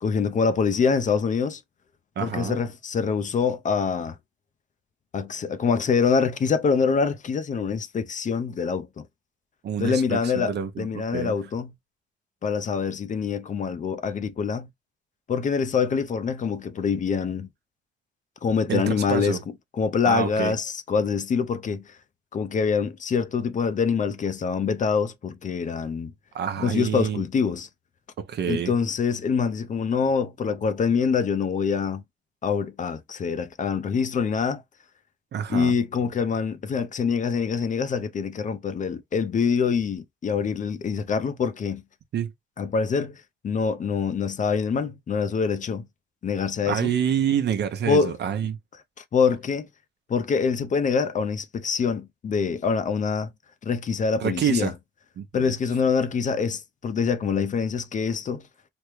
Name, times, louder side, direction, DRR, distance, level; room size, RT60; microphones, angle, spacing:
voice 1, 0.0-1.6 2.2-4.2 5.1-9.0 9.8-11.7 12.4-14.7 15.3-17.5 18.4-19.4 19.8-21.9 22.3-26.1 26.6-27.7 28.5-32.0 32.4-34.6 35.5-41.8 42.6-45.8 46.2-46.9 47.9-48.1 49.1-49.7 50.1-53.3 53.6-54.7 55.3-58.4, left 5 dB, 40° left, 0.5 m, -25 dB
voice 2, 2.2-2.6 9.6-11.3 18.7-19.4 20.0-20.5 26.3-27.2 28.2-28.7 35.3-35.7 42.1-42.3 46.6-48.6 54.2-54.7 55.2-55.5, right 8 dB, 60° right, 0.7 m, -27 dB
3.4 x 2.1 x 3.1 m
cardioid pair, 90°, 20 cm